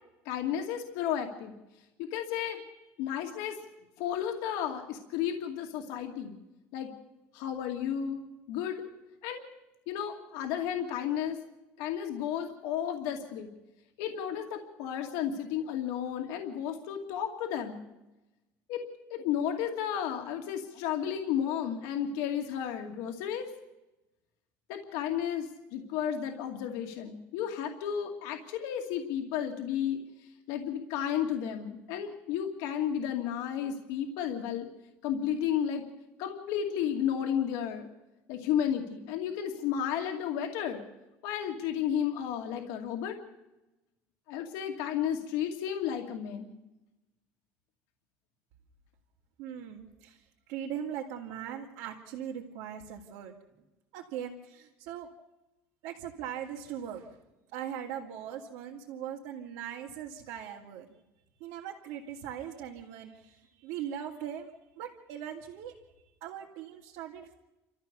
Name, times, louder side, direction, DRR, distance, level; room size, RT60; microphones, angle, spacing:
voice 1, 0.3-1.5 2.1-2.6 3.0-3.6 4.0-6.3 6.7-6.9 7.3-8.2 8.5-8.8 9.2-9.5 9.9-11.4 11.8-13.5 14.0-17.8 18.7-18.8 19.1-23.5 24.7-30.0 30.5-34.7 35.0-35.8 36.2-37.9 38.3-40.8 41.2-43.1 44.3-46.5, left 9 dB, 65° left, 3 dB, 2.4 m, -32 dB
voice 2, 49.4-53.3 53.9-55.1 55.8-57.2 57.5-60.9 61.4-65.8 66.2-67.3, right 9 dB, 65° right, -3 dB, 2.5 m, -40 dB
29.5 x 14.0 x 7.0 m, 1.0 s
cardioid pair, 180°, 6 cm